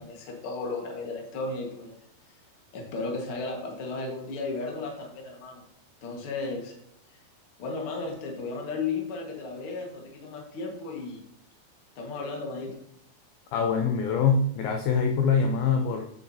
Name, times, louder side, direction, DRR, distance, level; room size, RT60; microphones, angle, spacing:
voice 1, 0.0-2.0 2.7-5.6 6.0-6.8 7.6-11.3 12.0-12.7, left 3 dB, 50° left, 0 dB, 1.6 m, -34 dB
voice 2, 13.5-16.1, left 5 dB, 80° left, 4 dB, 2.2 m, -24 dB
9.3 x 6.7 x 2.8 m, 0.73 s
omnidirectional pair, 4.8 m